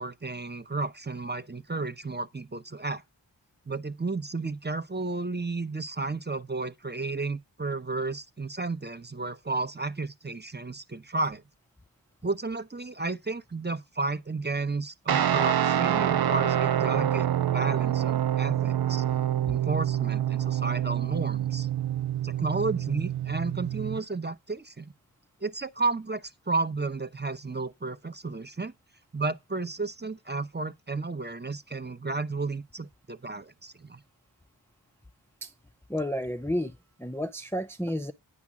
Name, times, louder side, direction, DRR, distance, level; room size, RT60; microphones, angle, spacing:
voice 1, 0.0-3.0 3.7-11.4 12.2-19.0 19.5-21.7 22.2-24.9 25.4-28.7 29.1-34.0, right 3 dB, 25° right, 0.7 m, -32 dB
Guitar, 15.1-24.0, right 11 dB, 60° right, 0.5 m, -26 dB
voice 2, 35.9-38.1, equal, 5° left, 0.5 m, -31 dB
9.7 x 5.0 x 7.2 m
wide cardioid pair, 55°, 43 cm